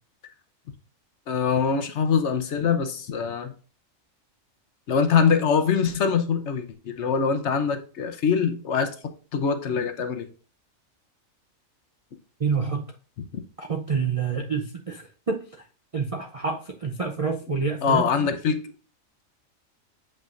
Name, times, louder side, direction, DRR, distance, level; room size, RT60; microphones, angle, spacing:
voice 1, 1.3-3.5 4.9-8.9 9.3-10.3 17.8-18.6, left 6 dB, 60° left, 1.0 m, -23 dB
voice 2, 12.4-12.9 13.6-15.4 15.9-18.3, right 5 dB, 45° right, 0.5 m, -28 dB
7.4 x 5.5 x 2.5 m
omnidirectional pair, 1.4 m